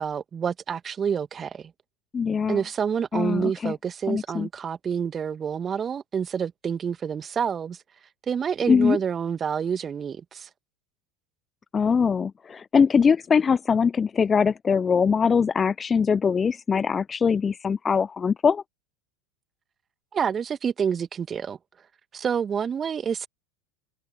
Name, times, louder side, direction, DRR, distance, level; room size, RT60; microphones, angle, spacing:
voice 1, 0.0-1.7 2.5-7.8 8.3-10.5 20.1-21.6 22.1-23.3, right 7 dB, 30° right, 1.8 m, -28 dB
voice 2, 2.1-2.6 3.1-3.7 4.1-4.5 8.7-9.0 11.7-18.6, left 6 dB, 25° left, 0.5 m, -22 dB
figure-of-eight pair, 80°, 0 cm